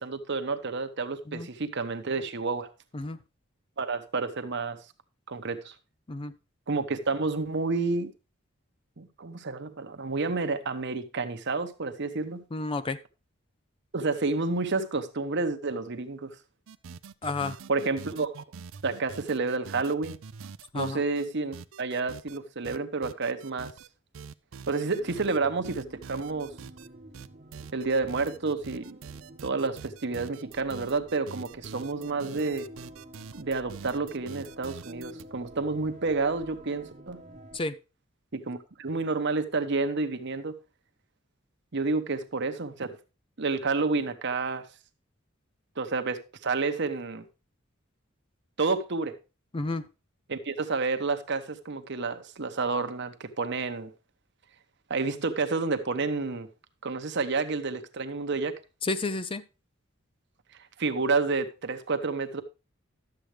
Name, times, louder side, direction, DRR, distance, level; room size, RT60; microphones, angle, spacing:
voice 1, 0.0-2.7 3.8-4.8 5.3-5.7 6.7-8.1 9.0-12.4 13.9-16.4 17.7-18.4 18.8-20.2 20.7-23.7 24.7-26.5 27.7-29.0 29.4-32.7 33.3-37.2 38.3-40.6 41.7-43.0 43.4-44.7 45.8-47.3 48.6-49.2 50.3-53.9 54.9-56.5 56.8-58.6 60.8-62.4, right 3 dB, 60° right, 1.0 m, -30 dB
voice 2, 12.5-13.0 17.2-17.6 20.7-21.0 37.5-37.8 49.5-49.8 58.8-59.4, left 3 dB, 25° left, 0.5 m, -31 dB
sound 1, 16.7-21.3 21.5-22.4 22.6-23.9 24.1-25.4 25.6-26.9 27.1-35.2, right 6 dB, 80° right, 0.5 m, -45 dB
sound 2, 24.8-37.6, right 1 dB, 35° right, 1.0 m, -49 dB
11.5 x 7.8 x 3.3 m
head